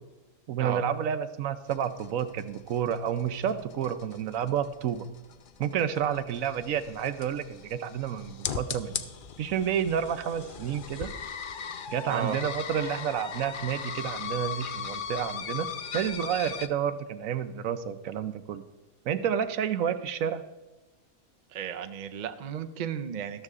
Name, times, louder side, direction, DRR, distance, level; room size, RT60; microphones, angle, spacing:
voice 1, 0.5-5.1 5.6-9.0 9.4-11.1 11.9-18.6 19.0-20.4, right 8 dB, 75° right, 12 dB, 1.1 m, -30 dB
sound 1, 1.7-16.7, left 7 dB, 55° left, 0.6 m, -38 dB
voice 2, 12.1-12.4 21.5-23.4, right 8 dB, 45° right, 8 dB, 0.6 m, -34 dB
13.0 x 12.5 x 3.6 m, 1.1 s
omnidirectional pair, 1.5 m